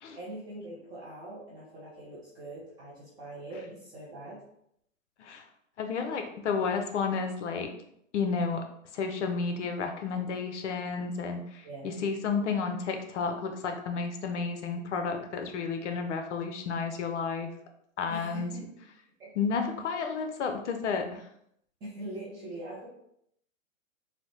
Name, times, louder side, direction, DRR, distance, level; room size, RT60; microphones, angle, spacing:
voice 1, 0.2-4.4 11.6-12.1 18.1-18.6 19.2-19.3 21.8-22.9, right 1 dB, 10° right, -9 dB, 0.3 m, -42 dB
voice 2, 5.8-7.7 8.1-8.6 8.9-17.5 18.0-18.5 19.4-21.2, left 5 dB, 60° left, 5 dB, 0.7 m, -31 dB
4.0 x 2.0 x 3.0 m, 0.72 s
hypercardioid pair, 130°, 40 cm